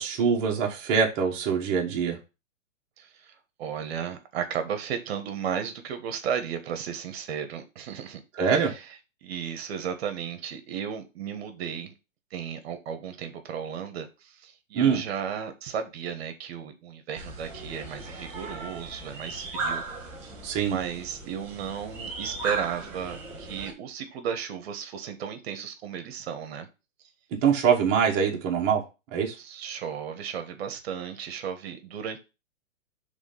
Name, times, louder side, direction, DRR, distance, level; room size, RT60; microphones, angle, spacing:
voice 1, 0.0-2.2 8.4-8.7 14.7-15.0 20.4-20.8 27.4-28.8 29.1-29.4, right 7 dB, 30° right, -1 dB, 1.4 m, -23 dB
voice 2, 3.0-8.8 9.2-11.9 12.3-19.8 20.2-20.3 20.7-26.7 29.4-32.2, right 8 dB, 50° right, 8 dB, 1.3 m, -34 dB
sound 1, 17.2-23.7, right 3 dB, 5° right, 0.4 m, -37 dB
5.0 x 3.5 x 5.6 m, 0.29 s
hypercardioid pair, 145°, 39 cm